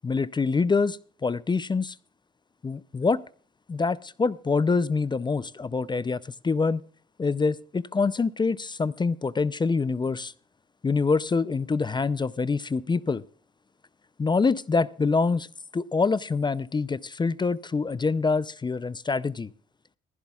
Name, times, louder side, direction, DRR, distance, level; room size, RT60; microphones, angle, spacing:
voice 1, 0.0-2.0 2.6-3.2 3.7-6.8 7.2-10.3 10.8-13.2 14.2-15.5 15.7-19.5, left 4 dB, 20° left, 19 dB, 0.5 m, -25 dB
15.5 x 14.5 x 2.3 m, 0.44 s
cardioid pair, 90°, 20 cm